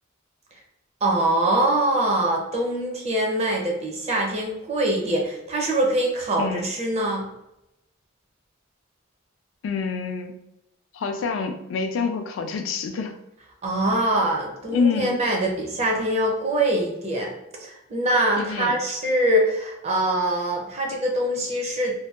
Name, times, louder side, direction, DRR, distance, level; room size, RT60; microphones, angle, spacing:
voice 1, 1.0-7.3 13.6-17.3 17.6-21.9, right 1 dB, 35° right, 0 dB, 0.5 m, -23 dB
voice 2, 6.4-6.7 9.6-10.3 10.9-13.1 14.7-15.2 18.4-18.8, left 5 dB, 70° left, 6 dB, 0.3 m, -26 dB
2.6 x 2.2 x 2.3 m, 0.86 s
head